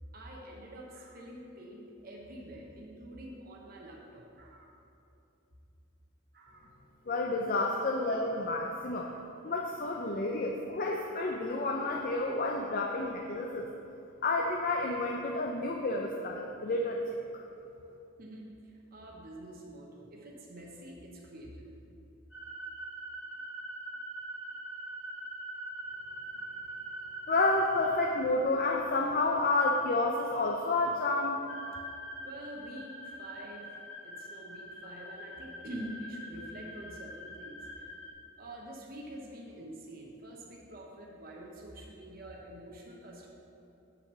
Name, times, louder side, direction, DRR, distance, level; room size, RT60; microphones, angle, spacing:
voice 1, 0.1-4.7 6.3-6.7 9.0-9.2 18.2-21.7 32.2-33.7 34.0-37.9 38.4-43.4, right 1 dB, 45° right, -2 dB, 1.0 m, -46 dB
voice 2, 7.1-9.1 9.4-13.7 14.2-17.0 27.3-31.4, left 2 dB, 40° left, 0 dB, 0.5 m, -30 dB
sound 1, 22.3-28.1 31.5-38.1, right 1 dB, 60° left, 1.5 m, -43 dB
6.5 x 6.1 x 6.7 m, 2.8 s
head